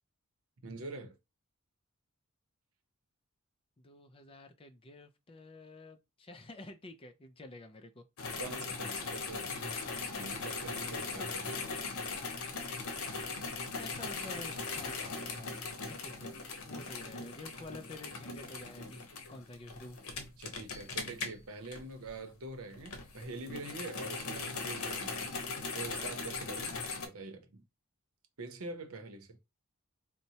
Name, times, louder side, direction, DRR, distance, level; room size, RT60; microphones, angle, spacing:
voice 1, 0.6-1.2 8.4-9.5 10.1-11.7 20.4-27.6 28.4-29.4, right 3 dB, 70° right, 0.8 m, -45 dB
voice 2, 3.8-8.0 13.7-15.5 15.9-16.3 16.6-20.0, left 2 dB, 25° left, 0.5 m, -49 dB
sound 1, 8.2-22.3 22.7-27.1, left 4 dB, 70° left, 0.8 m, -39 dB
4.2 x 2.1 x 2.7 m
head